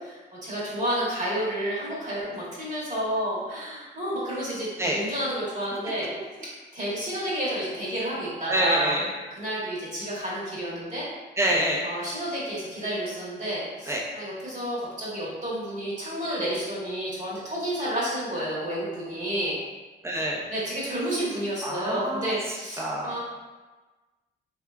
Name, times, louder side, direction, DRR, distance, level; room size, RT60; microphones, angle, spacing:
voice 1, 0.0-6.1 6.7-9.0 9.3-11.1 11.8-19.6 20.5-23.2, right 1 dB, 40° right, -8 dB, 1.1 m, -30 dB
voice 2, 8.5-9.1 11.4-11.8 13.9-14.0 20.0-20.4 21.6-22.3 22.8-23.2, right 1 dB, 15° right, -3 dB, 0.5 m, -26 dB
2.9 x 2.2 x 2.3 m, 1.3 s
cardioid pair, 90°, 20 cm